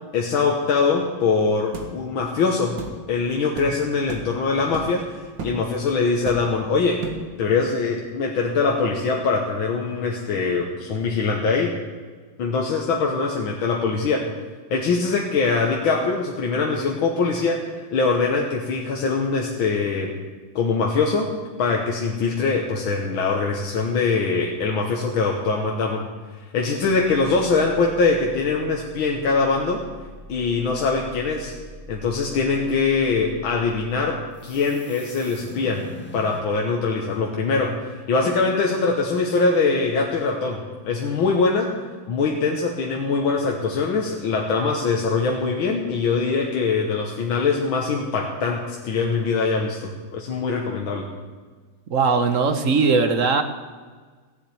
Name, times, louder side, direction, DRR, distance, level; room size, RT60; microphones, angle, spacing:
voice 1, 0.1-2.8 3.1-7.0 7.4-11.7 12.4-14.3 14.7-17.6 17.9-20.1 20.6-21.3 21.6-26.1 26.5-29.8 30.3-31.5 31.9-35.9 36.1-37.8 38.1-41.7 42.1-51.1, left 4 dB, 80° left, 0 dB, 2.0 m, -22 dB
sound 1, 1.7-1.9 2.8-3.0 3.6-3.7 4.1-4.3 4.7-5.0 5.4-5.6 6.3-6.6 7.0-7.3, right 3 dB, 70° right, 2.3 m, -33 dB
sound 2, 26.8-36.4, equal, 5° left, 1.5 m, -43 dB
voice 2, 51.9-53.4, right 4 dB, 50° right, 8 dB, 1.1 m, -19 dB
16.0 x 7.3 x 9.6 m, 1.5 s
omnidirectional pair, 2.1 m